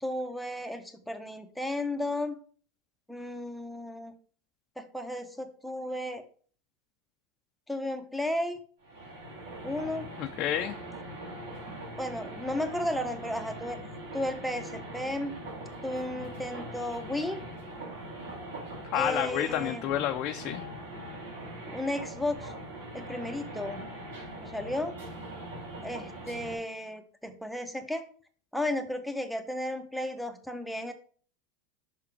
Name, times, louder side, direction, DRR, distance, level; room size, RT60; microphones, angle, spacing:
voice 1, 0.0-2.4 3.1-4.1 4.8-6.2 7.7-8.6 9.6-10.1 12.0-13.8 14.1-15.3 15.8-17.4 18.9-19.8 21.7-22.5 22.9-23.8 24.4-24.9 25.8-28.0 28.5-30.9, left 1 dB, ahead, 7 dB, 0.8 m, -34 dB
sound 1, 8.8-26.6, right 1 dB, 85° right, 2.1 m, -42 dB
voice 2, 10.2-10.8 18.9-20.6, left 11 dB, 50° left, 5 dB, 0.4 m, -29 dB
5.7 x 3.8 x 4.6 m, 0.43 s
supercardioid pair, 115°, 0 cm